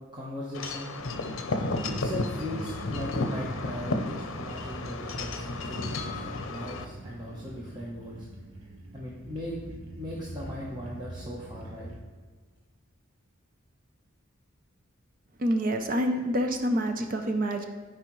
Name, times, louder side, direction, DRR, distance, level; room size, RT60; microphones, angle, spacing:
voice 1, 0.1-0.9 1.9-8.3 8.9-9.6 10.0-11.9, equal, 20° right, -5 dB, 0.9 m, -38 dB
Wind chime / Wind, 0.5-6.8, left 2 dB, 70° left, 0.6 m, -33 dB
sound 1, 1.6-12.0, right 1 dB, 70° right, 1.0 m, -43 dB
voice 2, 15.4-17.7, equal, 40° right, 5 dB, 0.5 m, -27 dB
13.5 x 4.8 x 3.1 m, 1.4 s
head